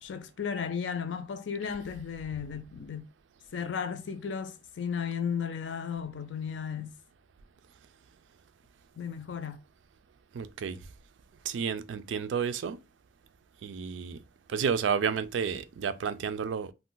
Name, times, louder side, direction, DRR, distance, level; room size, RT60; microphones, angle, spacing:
voice 1, 0.0-3.1 3.5-6.9 9.0-9.6, left 7 dB, 80° left, 0.4 m, -34 dB
voice 2, 10.3-10.8 11.4-12.8 13.6-14.2 14.5-16.7, right 6 dB, 85° right, 0.3 m, -31 dB
2.4 x 2.1 x 3.7 m
head